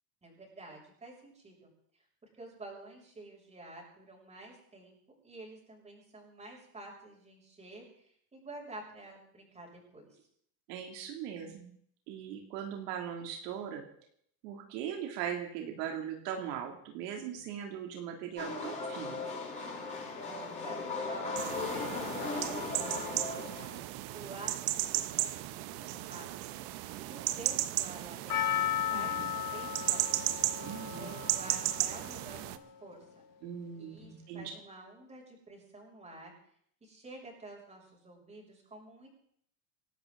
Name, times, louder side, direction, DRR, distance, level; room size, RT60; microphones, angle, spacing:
voice 1, 0.2-1.7 2.4-4.9 5.2-10.1 20.2-22.0 22.5-23.7 24.1-26.3 27.0-30.1 30.6-33.2 33.7-36.3 36.8-39.1, right 2 dB, 15° right, -2 dB, 6.8 m, -50 dB
voice 2, 10.7-11.7 12.1-13.8 14.4-19.3 28.9-29.3 30.6-31.1 33.4-34.5, right 8 dB, 75° right, 2 dB, 3.0 m, -40 dB
sound 1, 18.4-23.8, left 3 dB, 15° left, 7.5 m, -37 dB
sound 2, 21.4-32.6, right 15 dB, 55° right, 1.1 m, -35 dB
Percussion, 28.3-32.7 32.9-33.0, left 11 dB, 40° left, 1.9 m, -35 dB
27.5 x 12.0 x 3.9 m, 0.65 s
supercardioid pair, 145°, 48 cm